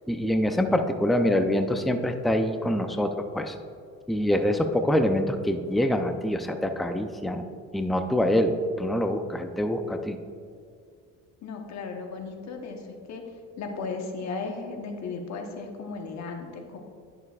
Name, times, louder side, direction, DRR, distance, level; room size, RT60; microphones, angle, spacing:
voice 1, 0.1-3.6 4.1-7.4 7.7-10.2, left 1 dB, ahead, 6 dB, 0.5 m, -25 dB
voice 2, 11.4-16.8, left 4 dB, 60° left, 3 dB, 1.2 m, -36 dB
11.0 x 6.6 x 2.4 m, 2.3 s
cardioid pair, 90°, 31 cm